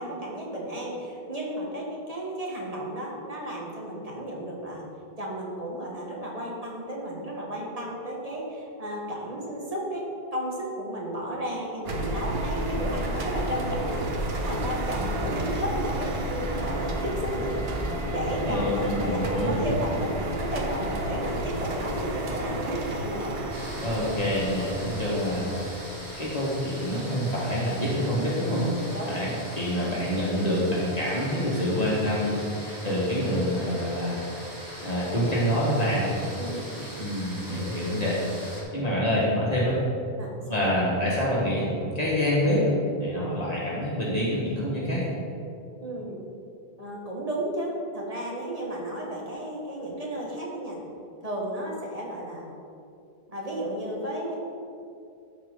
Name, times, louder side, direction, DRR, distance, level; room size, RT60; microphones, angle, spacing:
voice 1, 0.0-4.8 5.2-10.0 10.3-17.5 17.8-23.3 28.9-29.1 36.3-36.6 40.2-40.7 45.8-46.2 46.8-50.8 51.2-52.5 53.3-54.4, right 1 dB, 35° right, -3 dB, 1.6 m, -33 dB
sound 1, 11.9-27.3, right 1 dB, 75° right, 1.1 m, -31 dB
voice 2, 18.4-19.6 23.8-25.9 26.2-28.6 29.0-34.2 34.8-36.1 36.8-39.8 40.5-41.7 41.9-42.7 43.0-45.0, equal, 40° left, -7 dB, 1.7 m, -26 dB
sound 2, 23.5-38.6, equal, 20° right, 1.3 m, -41 dB
13.5 x 4.5 x 3.8 m, 2.5 s
omnidirectional pair, 1.0 m